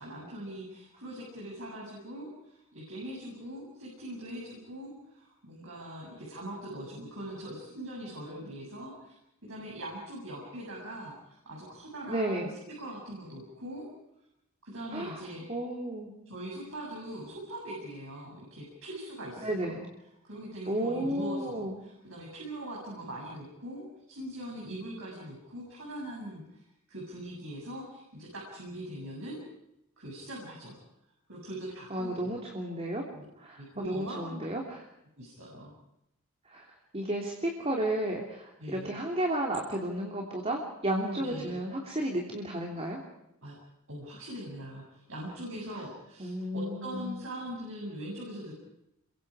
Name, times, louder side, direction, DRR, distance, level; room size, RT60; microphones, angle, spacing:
voice 1, 0.0-9.2 9.4-13.9 14.6-15.4 16.3-19.8 20.2-26.6 26.9-29.4 30.0-30.8 31.3-32.3 33.1-33.2 33.6-34.5 35.2-35.7 38.6-38.9 41.0-41.6 43.4-43.6 43.9-48.5, right 1 dB, 65° right, -3 dB, 7.7 m, -41 dB
voice 2, 12.1-12.5 14.9-15.2 15.5-16.1 19.4-19.9 20.7-21.7 31.9-33.1 33.4-34.8 36.5-36.7 36.9-43.0 46.2-47.1, right 1 dB, 30° right, 1 dB, 3.0 m, -33 dB
29.0 x 23.5 x 4.9 m, 0.83 s
head